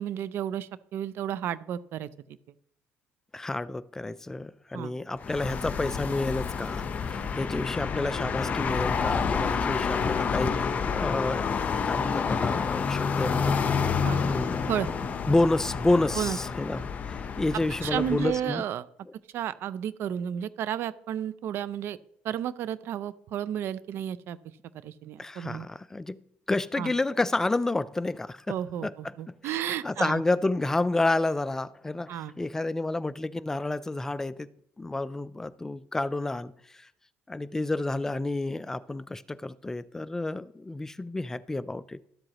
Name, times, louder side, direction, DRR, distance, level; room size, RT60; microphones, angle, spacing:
voice 1, 0.0-2.1 4.7-4.9 14.0-14.2 14.7-14.9 16.1-16.4 17.8-18.9 19.3-22.0 22.2-24.4 24.8-25.7 26.8-26.9 28.5-30.2 32.1-32.3, right 10 dB, 60° right, 0.5 m, -32 dB
voice 2, 3.3-14.8 15.3-18.6 25.2-26.2 26.5-28.6 28.8-29.1 29.4-29.6 29.8-34.5 34.8-36.9 37.3-42.0, left 2 dB, 10° left, 0.4 m, -30 dB
sound 1, 5.2-18.5, left 6 dB, 35° left, 0.9 m, -29 dB
13.0 x 7.7 x 3.0 m
cardioid pair, 125°, 4 cm